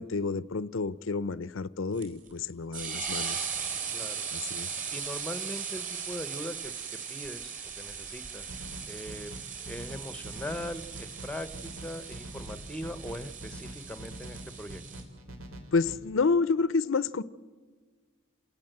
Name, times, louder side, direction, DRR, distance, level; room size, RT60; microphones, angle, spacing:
voice 1, 0.0-3.4 4.3-4.7 15.7-17.2, left 4 dB, 70° left, 0.6 m, -29 dB
sound 1, 2.0-15.0, right 6 dB, 40° right, 4.4 m, -38 dB
voice 2, 4.9-6.7 7.1-8.6 8.9-9.3 9.6-14.8, equal, 5° left, 0.8 m, -40 dB
sound 2, 8.5-16.0, right 1 dB, 80° right, 3.2 m, -45 dB
29.0 x 18.0 x 7.9 m
head